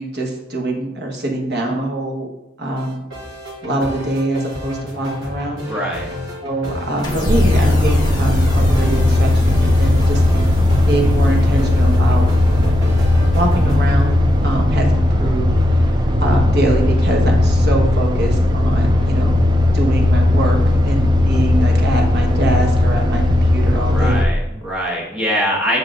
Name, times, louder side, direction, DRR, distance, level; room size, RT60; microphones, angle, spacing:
voice 1, 0.0-2.3 2.6-3.0 3.6-6.0 6.4-10.2 10.9-12.2 13.3-19.4 19.7-24.1, right 1 dB, 55° right, 1 dB, 1.2 m, -23 dB
sound 1, 2.8-14.0, left 1 dB, 70° right, 1.5 m, -31 dB
voice 2, 5.7-6.1 23.8-25.8, equal, 5° right, -5 dB, 1.4 m, -23 dB
sound 2, 7.0-13.4, left 1 dB, 20° left, 1.1 m, -33 dB
sound 3, 7.3-24.2, left 1 dB, 20° right, 0.4 m, -16 dB
7.3 x 6.3 x 2.5 m, 0.95 s
head